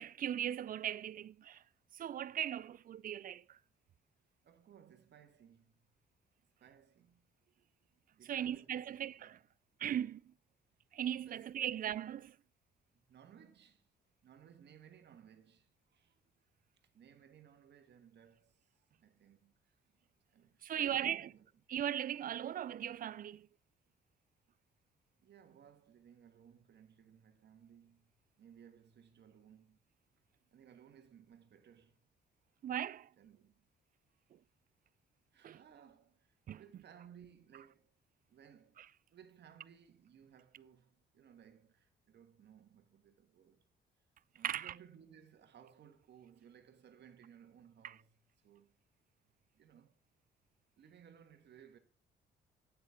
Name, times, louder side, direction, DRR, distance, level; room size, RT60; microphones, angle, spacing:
voice 1, 0.0-1.6 1.9-3.4 8.3-9.4 9.8-10.2 10.9-12.3 20.6-21.2 21.7-23.5 32.6-33.1 35.4-35.6 36.5-36.6 44.4-44.7, right 10 dB, 45° right, 0.4 m, -38 dB
voice 2, 4.4-5.9 6.6-7.3 8.2-9.4 11.0-12.0 12.9-13.9 14.2-16.1 16.9-18.7 19.0-19.7 20.3-21.6 25.2-29.8 30.5-32.1 33.2-33.7 35.3-37.9 38.3-38.8 39.1-43.7 44.3-48.7 49.5-49.9 50.8-51.8, right 8 dB, 60° right, 1.5 m, -60 dB
8.7 x 8.1 x 3.6 m
cardioid pair, 90°, 20 cm